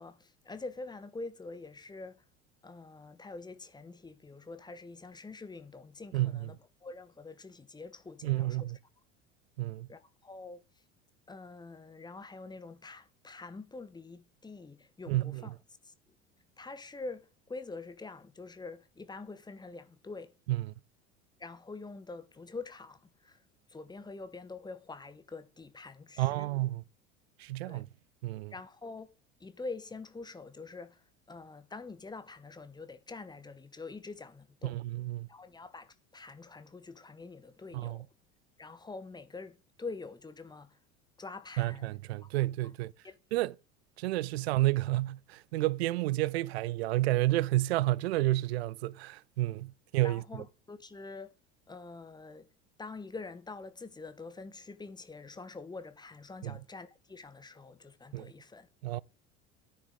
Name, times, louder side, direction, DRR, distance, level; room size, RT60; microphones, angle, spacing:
voice 1, 0.0-2.2 2.6-6.6 6.8-8.6 9.9-10.6 11.3-15.5 15.8-15.9 16.6-20.3 21.4-23.4 23.7-26.5 27.7-27.9 28.5-29.1 29.4-31.0 31.3-34.8 35.3-38.1 38.6-40.8 41.2-41.9 43.0-43.2 50.0-51.3 51.7-52.5 52.8-58.7, left 3 dB, 10° left, 1.0 m, -45 dB
voice 2, 6.1-6.5 8.2-8.8 9.6-9.9 15.1-15.5 20.5-20.7 26.2-26.8 27.4-27.9 28.2-28.5 34.6-35.3 37.7-38.0 41.6-42.9 43.3-43.5 44.0-50.2 56.4-56.5 58.1-58.3 58.8-59.0, right 17 dB, 60° right, 0.5 m, -30 dB
10.0 x 9.8 x 3.7 m
figure-of-eight pair, 70°, 35 cm